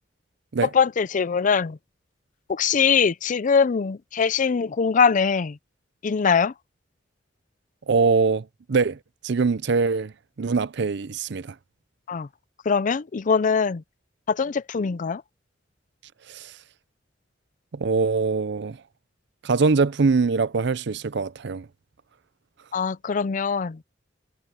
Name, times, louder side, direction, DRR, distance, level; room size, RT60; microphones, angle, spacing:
voice 1, 0.6-1.8 2.5-5.6 6.0-6.5 12.1-12.3 12.7-13.8 14.3-15.2 22.7-23.8, left 6 dB, 45° left, 0.4 m, -22 dB
voice 2, 7.9-9.0 9.2-10.1 10.4-11.5 16.3-16.5 17.7-18.8 19.4-21.7, right 4 dB, 65° right, 0.6 m, -23 dB
head